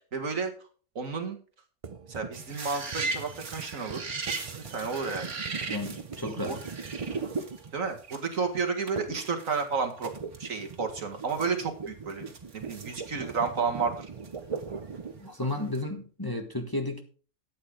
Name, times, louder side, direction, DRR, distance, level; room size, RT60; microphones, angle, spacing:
voice 1, 0.1-0.5 1.0-1.4 2.1-4.0 4.4-5.3 6.4-6.6 7.7-10.1 10.4-12.3 12.5-14.1, right 5 dB, 65° right, 2.2 m, -31 dB
sound 1, 1.8-8.2 9.0-9.3 9.6-15.3, right 5 dB, 40° right, 0.5 m, -40 dB
sound 2, 2.3-8.4 8.9-9.0 9.2-10.4 10.7-10.8 11.2-13.7 14.2-15.2 15.5-15.8, right 4 dB, 85° right, 2.2 m, -39 dB
voice 2, 5.7-6.6 15.2-17.0, left 1 dB, 15° left, 1.5 m, -33 dB
13.0 x 8.8 x 3.7 m
omnidirectional pair, 1.5 m